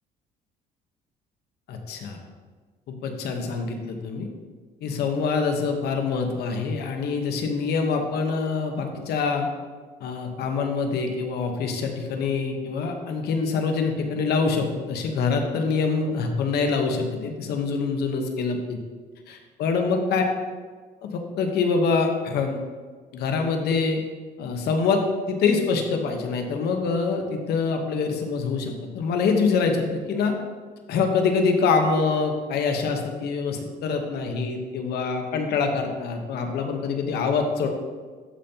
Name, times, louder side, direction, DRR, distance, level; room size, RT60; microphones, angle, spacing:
voice 1, 1.7-2.2 2.9-4.3 4.8-9.5 10.0-18.8 19.3-20.2 21.0-22.6 23.1-24.0 24.4-30.4 30.9-37.7, left 4 dB, 70° left, 4 dB, 1.2 m, -25 dB
12.5 x 5.2 x 2.9 m, 1.5 s
cardioid pair, 110°, 17 cm